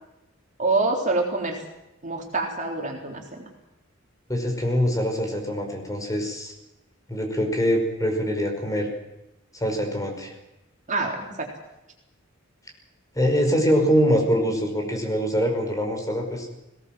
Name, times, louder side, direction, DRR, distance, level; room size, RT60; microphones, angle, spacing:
voice 1, 0.6-1.6 2.0-3.4 10.9-11.5, right 3 dB, 40° right, 1 dB, 3.9 m, -26 dB
voice 2, 4.3-6.5 7.1-8.9 9.5-10.3 13.2-16.5, equal, 15° left, 2 dB, 5.3 m, -24 dB
21.5 x 18.0 x 7.7 m, 0.94 s
head